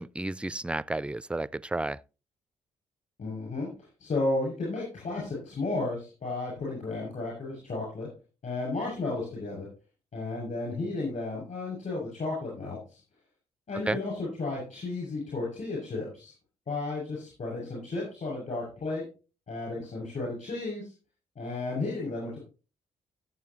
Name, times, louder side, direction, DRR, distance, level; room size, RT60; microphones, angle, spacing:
voice 1, 0.0-2.0 13.9-14.0, right 2 dB, 5° right, 0.4 m, -32 dB
voice 2, 3.2-3.7 4.0-8.1 8.4-9.7 10.1-13.0 13.7-16.3 16.7-19.0 19.5-20.9 21.3-22.4, left 2 dB, 55° left, 6.7 m, -33 dB
16.5 x 6.9 x 3.0 m
hypercardioid pair, 45°, 16 cm